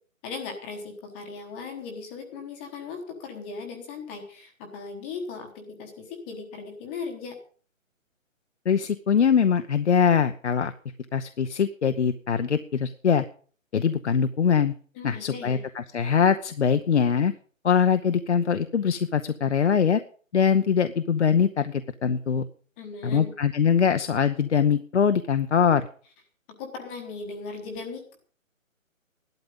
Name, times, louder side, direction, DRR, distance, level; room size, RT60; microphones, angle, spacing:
voice 1, 0.2-7.4 14.9-15.6 22.8-23.3 26.6-28.2, left 4 dB, 10° left, 4 dB, 1.1 m, -38 dB
voice 2, 8.7-10.7 11.1-13.2 13.7-14.7 15.0-17.3 17.6-20.0 20.3-22.5 23.0-25.9, left 7 dB, 60° left, 10 dB, 0.9 m, -22 dB
14.0 x 12.0 x 5.3 m, 0.43 s
hypercardioid pair, 165°, 40 cm